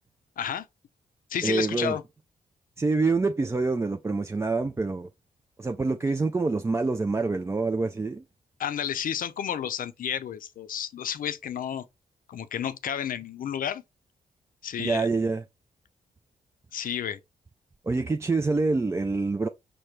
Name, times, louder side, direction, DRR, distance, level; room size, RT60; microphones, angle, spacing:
voice 1, 0.4-0.7 1.3-2.0 8.6-11.9 12.3-13.8 14.6-15.1 16.7-17.2, left 9 dB, 60° left, 0.5 m, -31 dB
voice 2, 1.4-2.0 2.8-5.1 5.6-8.2 14.8-15.4 17.8-19.5, right 3 dB, 15° right, 0.4 m, -26 dB
5.0 x 2.1 x 4.4 m
cardioid pair, 75°, 16 cm